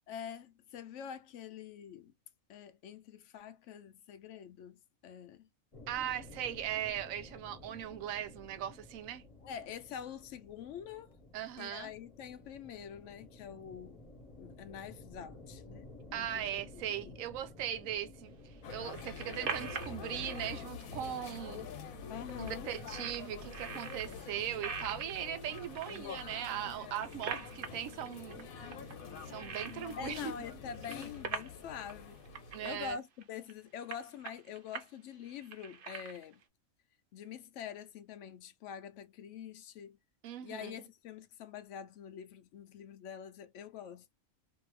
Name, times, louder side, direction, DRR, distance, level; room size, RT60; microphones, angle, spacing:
voice 1, 0.1-2.1 2.5-5.5 9.4-11.1 11.6-14.0 14.4-15.9 16.2-17.1 22.1-22.7 30.0-32.2 32.6-36.4 37.1-40.0 40.4-44.1, left 8 dB, 70° left, 0.8 m, -46 dB
sound 1, 5.7-22.9, left 2 dB, 25° left, 0.9 m, -54 dB
voice 2, 5.9-9.2 11.3-11.9 16.1-18.3 18.7-21.7 22.4-28.5 29.3-30.3 32.5-33.0 40.2-40.7, right 10 dB, 80° right, 1.0 m, -39 dB
sound 2, 18.6-32.9, left 5 dB, 90° left, 1.2 m, -46 dB
sound 3, 18.7-20.5 21.3-21.4 21.7-21.8 22.1-22.5 22.9-24.1 24.6-26.2 26.7-28.4 28.7-30.3 30.6-31.6 31.9-32.0 32.3-32.7 33.2-33.5 33.9-34.9 35.2-36.4, right 6 dB, 55° right, 0.6 m, -43 dB
2.7 x 2.7 x 3.0 m
omnidirectional pair, 1.4 m